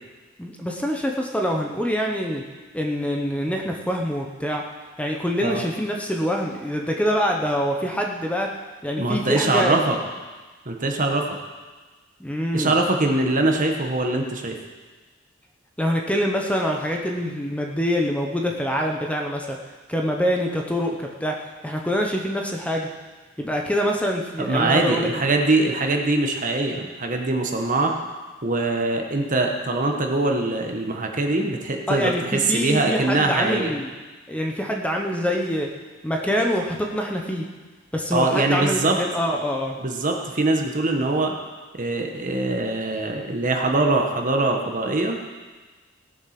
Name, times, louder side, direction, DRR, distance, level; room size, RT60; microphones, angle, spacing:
voice 1, 0.4-2.4 2.7-4.6 5.0-8.5 8.8-9.8 12.2-12.7 15.8-19.6 19.9-22.9 23.4-25.1 31.9-33.9 34.3-35.7 36.0-37.5 37.9-39.8, equal, 5° left, 1 dB, 0.9 m, -25 dB
voice 2, 9.0-10.0 10.6-11.3 12.5-14.6 24.4-27.9 28.4-33.7 38.1-39.0 39.8-41.4 41.7-45.2, right 2 dB, 40° right, 2 dB, 1.4 m, -22 dB
17.5 x 7.0 x 6.0 m, 1.3 s
head